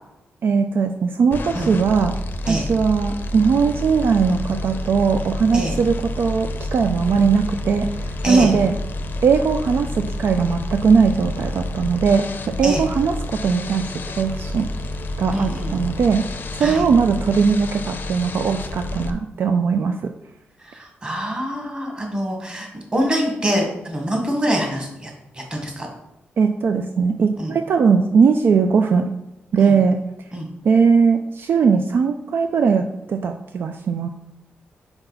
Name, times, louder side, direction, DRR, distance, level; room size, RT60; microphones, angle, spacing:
voice 1, 0.4-2.2 2.5-7.9 8.3-8.7 9.2-12.3 12.6-13.9 14.2-14.7 15.2-16.2 16.5-20.1 26.4-29.0 29.5-30.0 30.6-34.1, right 5 dB, 65° right, 6 dB, 0.4 m, -19 dB
sound 1, 1.3-19.1, left 2 dB, 55° left, 0.6 m, -29 dB
voice 2, 8.2-8.5 12.6-12.8 15.3-15.8 16.6-16.8 20.6-25.9 27.4-27.5 29.6-29.8 30.3-30.5, equal, 25° right, 1 dB, 1.6 m, -25 dB
5.3 x 4.5 x 4.0 m, 0.88 s
cardioid pair, 95°, 4 cm